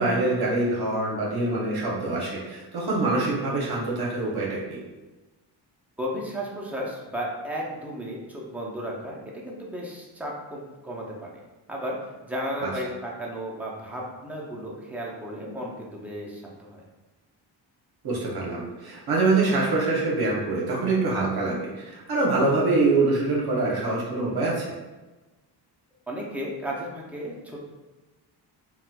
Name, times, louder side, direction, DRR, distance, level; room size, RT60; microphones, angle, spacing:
voice 1, 0.0-4.8 12.6-12.7 18.0-24.7, right 3 dB, 55° right, -4 dB, 0.9 m, -25 dB
voice 2, 6.0-11.4 11.7-12.0 12.2-16.8 26.1-27.6, equal, 5° right, -4 dB, 0.5 m, -34 dB
4.1 x 2.2 x 2.2 m, 1.2 s
cardioid pair, 120°, 46 cm